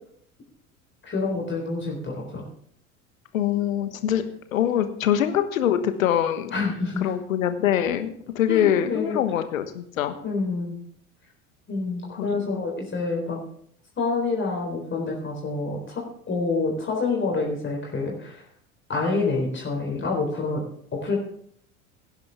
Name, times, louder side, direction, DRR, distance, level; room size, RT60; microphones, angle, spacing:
voice 1, 1.0-2.5 6.5-7.1 8.5-9.2 10.2-10.8 11.7-13.4 14.0-18.4 18.9-20.6 20.9-21.2, left 3 dB, 25° left, 0 dB, 4.0 m, -27 dB
voice 2, 3.3-4.2 4.5-6.6 7.0-8.1 8.3-10.1 12.1-12.6, left 10 dB, 65° left, 10 dB, 1.3 m, -24 dB
17.5 x 10.5 x 3.6 m, 0.64 s
figure-of-eight pair, 70°, 43 cm